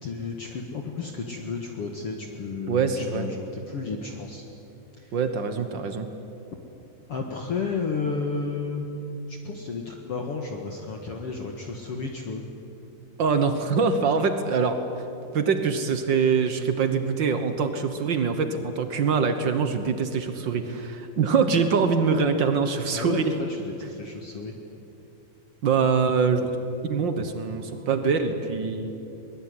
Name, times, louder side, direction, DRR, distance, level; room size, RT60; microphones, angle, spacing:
voice 1, 0.0-4.4 5.0-5.1 7.1-8.9 9.3-12.4 22.9-23.2 23.5-24.5, left 4 dB, 50° left, 2 dB, 2.3 m, -32 dB
voice 2, 2.7-3.3 5.1-6.1 13.2-14.8 15.3-23.3 25.6-26.6 26.9-28.9, right 5 dB, 80° right, 8 dB, 1.0 m, -24 dB
22.5 x 22.5 x 9.7 m, 2.7 s
omnidirectional pair, 4.1 m